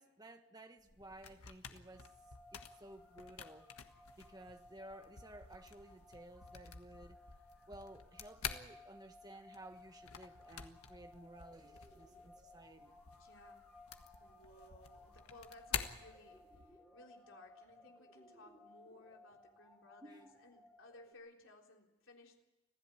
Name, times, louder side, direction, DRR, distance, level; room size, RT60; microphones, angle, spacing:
voice 1, 0.0-2.1 2.5-3.7 4.2-7.2 7.7-12.9 20.0-20.3, right 1 dB, 15° right, 1.4 m, -55 dB
sound 1, 0.8-16.8, left 7 dB, 85° left, 1.5 m, -49 dB
sound 2, 1.9-21.1, left 2 dB, 5° left, 7.3 m, -61 dB
voice 2, 13.2-13.6 14.2-22.4, left 2 dB, 60° left, 3.7 m, -60 dB
26.0 x 16.0 x 8.5 m
head